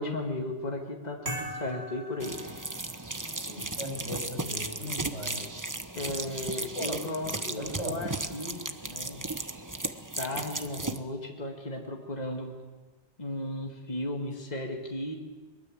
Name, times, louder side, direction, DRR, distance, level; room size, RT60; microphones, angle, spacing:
voice 1, 0.0-2.4 5.9-9.3 10.2-12.5 13.2-15.2, left 2 dB, 35° left, 1 dB, 2.4 m, -35 dB
sound 1, 1.2-3.2, right 1 dB, 55° right, 4.7 m, -39 dB
sound 2, 2.2-11.0, right 2 dB, 15° right, 1.0 m, -36 dB
voice 2, 3.4-5.6 6.8-7.0 7.6-8.0, left 1 dB, 85° left, 3 dB, 5.4 m, -37 dB
23.0 x 22.5 x 7.9 m, 1.3 s
omnidirectional pair, 1.2 m